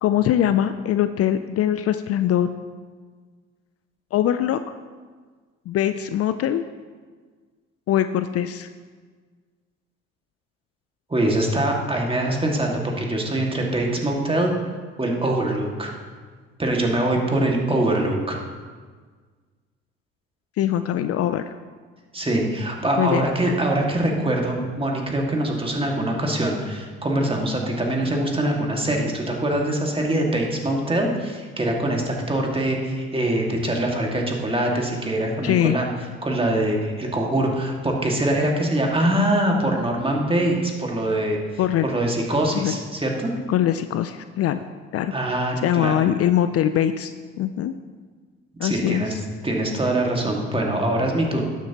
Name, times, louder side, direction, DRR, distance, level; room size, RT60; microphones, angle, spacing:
voice 1, 0.0-2.5 4.1-4.7 5.7-6.6 7.9-8.7 20.6-21.5 23.0-23.3 35.4-35.8 41.6-41.9 42.5-42.8 43.5-44.6 44.9-45.1 45.6-47.7 48.6-49.2, left 11 dB, 55° left, 11 dB, 0.4 m, -22 dB
voice 2, 11.1-14.5 15.0-15.9 16.6-18.4 22.1-35.9 36.2-41.4 41.8-43.3 45.1-45.9 48.6-49.1 49.4-51.5, right 1 dB, 20° right, 0 dB, 1.9 m, -23 dB
12.0 x 7.4 x 2.9 m, 1.5 s
supercardioid pair, 65°, 30 cm